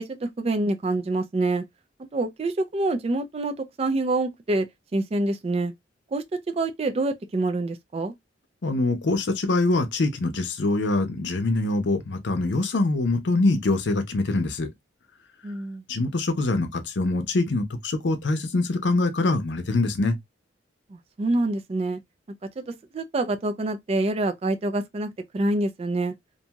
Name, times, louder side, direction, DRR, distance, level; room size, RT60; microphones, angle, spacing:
voice 1, 0.0-1.6 2.1-4.7 4.9-5.7 6.1-6.2 6.6-8.1 15.4-15.8 20.9-22.0 22.6-26.1, right 2 dB, 35° right, 0.3 m, -26 dB
voice 2, 8.6-14.7 15.9-20.2, left 2 dB, 65° left, 0.6 m, -24 dB
2.6 x 2.3 x 2.8 m
head